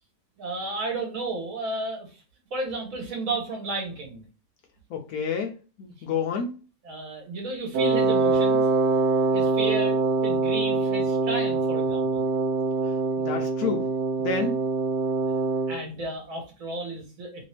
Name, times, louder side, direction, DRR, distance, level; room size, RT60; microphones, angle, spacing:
voice 1, 0.4-2.2 2.5-4.2 6.8-8.7 9.3-12.2 15.2-15.3 15.7-17.4, right 3 dB, 55° right, 2 dB, 1.5 m, -33 dB
voice 2, 4.9-6.5 13.2-13.9 14.2-14.6, left 5 dB, 70° left, 3 dB, 1.1 m, -29 dB
Wind instrument woodwind instrument, 7.7-15.8, right 3 dB, 70° right, 1.0 m, -24 dB
3.3 x 2.7 x 3.2 m, 0.33 s
omnidirectional pair, 1.8 m